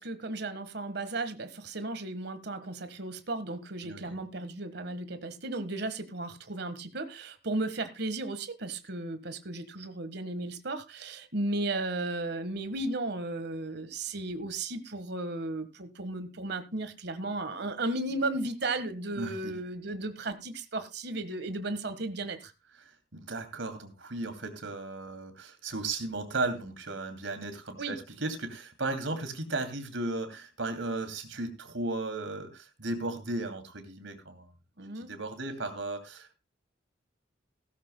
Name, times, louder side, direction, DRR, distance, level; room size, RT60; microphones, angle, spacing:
voice 1, 0.0-22.5 27.8-28.0 34.8-35.1, right 2 dB, 60° right, 11 dB, 1.5 m, -35 dB
voice 2, 3.8-4.2 19.2-19.5 22.8-34.5 34.9-36.3, right 2 dB, 80° right, 7 dB, 2.6 m, -35 dB
16.5 x 13.5 x 2.2 m, 0.25 s
head